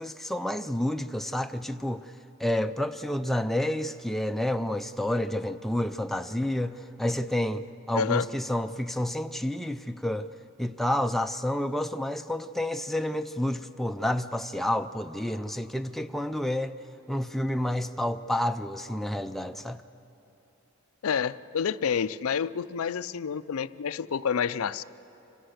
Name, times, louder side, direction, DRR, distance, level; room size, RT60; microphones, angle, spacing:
voice 1, 0.0-2.1 2.4-10.3 10.6-16.7 17.1-19.8, left 1 dB, ahead, 7 dB, 0.4 m, -29 dB
voice 2, 7.9-8.3 21.0-24.8, left 7 dB, 70° left, 15 dB, 0.4 m, -28 dB
25.5 x 15.5 x 7.9 m, 3.0 s
head